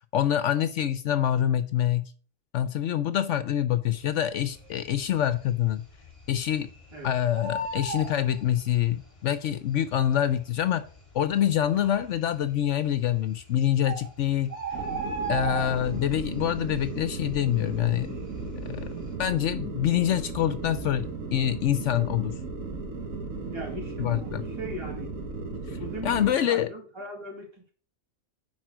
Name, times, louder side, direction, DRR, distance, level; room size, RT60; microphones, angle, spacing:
voice 1, 0.0-2.1 2.5-5.8 6.3-6.7 7.0-10.8 11.1-14.5 15.3-18.2 18.7-18.9 19.2-22.4 24.0-24.4 25.7-25.8 26.0-26.7, left 11 dB, 70° left, 0.9 m, -26 dB
Bird, 4.4-5.0 5.4-5.5 5.7-6.9 7.2-9.0 9.9-10.0 10.6-10.7 10.9-11.0 11.6-12.1 13.1-13.2 13.5-13.6 13.8-16.1 16.5-16.8 17.1-18.5 18.8-19.1, right 3 dB, 30° left, 4.4 m, -34 dB
sound 1, 14.7-26.3, right 3 dB, 90° right, 1.7 m, -36 dB
voice 2, 23.5-25.1 25.8-27.7, right 1 dB, 20° right, 2.2 m, -39 dB
10.5 x 4.2 x 6.2 m
omnidirectional pair, 1.4 m